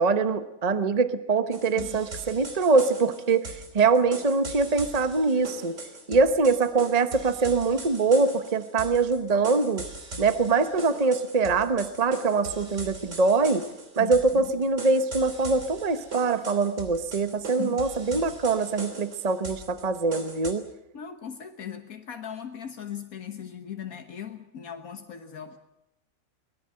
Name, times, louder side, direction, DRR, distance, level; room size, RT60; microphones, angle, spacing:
voice 1, 0.0-5.8 6.1-9.8 10.2-13.7 14.0-20.6, right 4 dB, 30° right, 10 dB, 1.0 m, -23 dB
sound 1, 1.5-20.5, right 2 dB, 55° right, 3.5 m, -40 dB
voice 2, 14.0-14.5 17.6-17.9 20.9-25.6, left 9 dB, 70° left, 6 dB, 1.7 m, -38 dB
23.5 x 20.5 x 7.7 m, 0.87 s
omnidirectional pair, 1.5 m